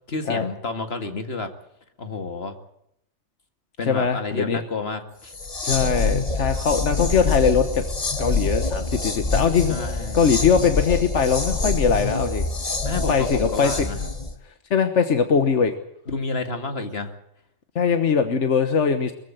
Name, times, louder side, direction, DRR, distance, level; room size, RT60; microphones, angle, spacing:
voice 1, 0.1-1.5 2.0-2.6 3.8-5.3 9.7-10.2 12.8-14.0 16.1-17.1, left 3 dB, 60° left, 7 dB, 2.3 m, -30 dB
voice 2, 3.9-4.6 5.6-7.8 8.2-9.7 10.1-12.5 13.1-13.9 14.7-15.7 17.7-19.1, left 6 dB, 85° left, 8 dB, 1.6 m, -21 dB
Grave Groove Sound loop, 5.3-14.3, left 3 dB, 30° left, 1.4 m, -26 dB
22.5 x 15.0 x 9.1 m, 0.75 s
omnidirectional pair, 1.2 m